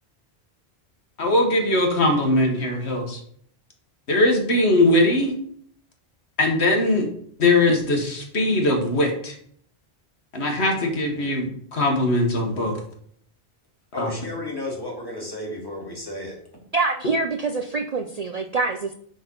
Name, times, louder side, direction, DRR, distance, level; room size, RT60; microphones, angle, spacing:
voice 1, 1.2-3.2 4.1-5.3 6.4-7.1 7.4-9.3 10.3-12.8 14.0-14.1, left 1 dB, 75° left, 2 dB, 1.8 m, -20 dB
voice 2, 13.9-16.4, left 1 dB, 20° left, -2 dB, 2.5 m, -32 dB
voice 3, 16.7-18.9, right 3 dB, 45° right, 4 dB, 0.5 m, -25 dB
9.2 x 3.9 x 5.4 m, 0.63 s
omnidirectional pair, 1.1 m